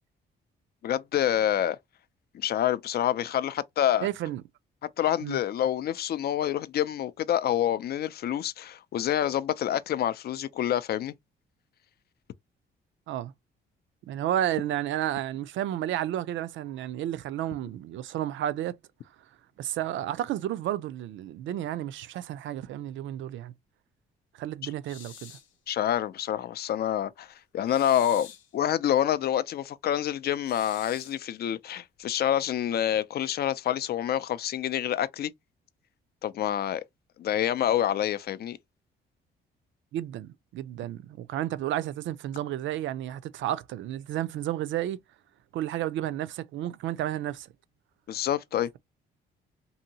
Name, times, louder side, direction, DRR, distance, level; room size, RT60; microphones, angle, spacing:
voice 1, 0.8-1.8 2.3-4.1 5.0-11.1 25.7-27.3 27.5-28.3 28.5-35.3 36.2-36.8 37.2-38.6 48.1-48.7, left 11 dB, 55° left, 0.4 m, -27 dB
voice 2, 4.0-4.4 5.2-5.4 13.1-13.3 14.0-18.8 19.6-23.5 24.4-25.3 39.9-45.0 45.5-47.5, right 12 dB, 70° right, 0.4 m, -32 dB
sound 1, 24.8-25.5 27.7-28.5 30.4-31.2, left 8 dB, 80° left, 0.7 m, -47 dB
2.7 x 2.6 x 2.7 m
cardioid pair, 90°, 20 cm